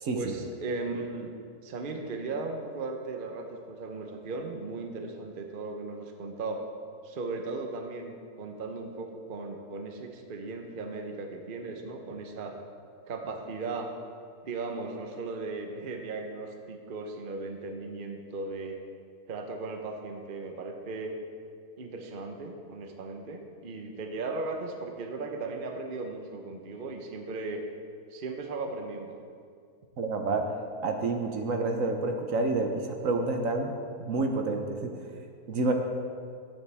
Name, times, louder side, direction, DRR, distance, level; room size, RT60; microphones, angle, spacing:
voice 1, 0.1-1.3 1.6-6.6 7.0-12.6 13.1-13.9 14.4-18.8 19.3-21.1 21.8-27.6 28.1-29.2, right 3 dB, 40° right, 3 dB, 0.9 m, -37 dB
voice 2, 30.0-30.5 30.8-33.7 34.0-34.6 35.5-35.7, right 3 dB, 65° right, 4 dB, 1.2 m, -28 dB
16.5 x 7.3 x 3.4 m, 2.2 s
omnidirectional pair, 1.5 m